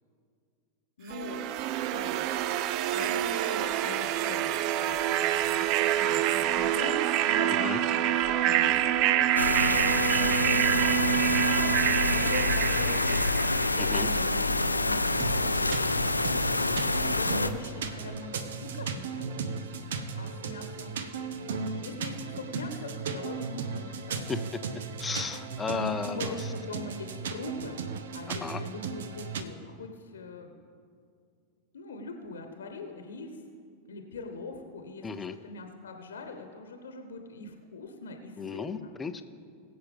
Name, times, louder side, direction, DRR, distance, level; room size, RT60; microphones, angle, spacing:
voice 1, 1.0-13.3 13.7-15.1 15.4-15.8 16.7-21.0 21.4-24.3 26.0-27.8 28.1-30.5 31.7-33.4 33.9-38.9, left 3 dB, 65° left, 5 dB, 1.1 m, -42 dB
sound 1, 1.1-14.0, right 12 dB, 40° right, 0.4 m, -27 dB
sound 2, 9.4-17.5, left 2 dB, 85° left, 0.5 m, -27 dB
voice 2, 13.8-14.1 24.3-24.4 25.0-26.4 28.3-28.6 35.0-35.3 38.4-39.2, left 5 dB, 15° left, 10 dB, 0.7 m, -34 dB
sound 3, 15.2-29.4, right 5 dB, 60° right, 0.8 m, -36 dB
22.0 x 7.6 x 3.5 m, 2.3 s
figure-of-eight pair, 90°, 0 cm